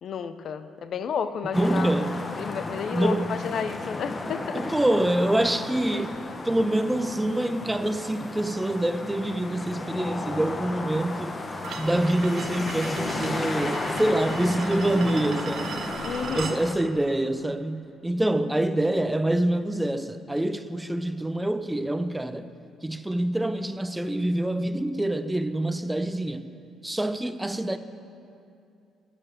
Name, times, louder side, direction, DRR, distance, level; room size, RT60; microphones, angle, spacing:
voice 1, 0.0-1.9 2.4-4.7 5.9-6.0 16.0-16.6, left 7 dB, 60° left, 0.5 m, -31 dB
sound 1, 1.5-16.7, left 2 dB, 25° left, 0.8 m, -34 dB
voice 2, 1.5-2.2 2.9-3.4 4.5-6.2 6.4-11.4 11.8-15.8 16.3-22.5 22.8-26.5 26.8-27.8, right 1 dB, 10° right, 0.4 m, -26 dB
sound 2, 11.6-16.6, right 6 dB, 60° right, 0.7 m, -38 dB
10.5 x 6.9 x 7.2 m
cardioid pair, 95°, 0 cm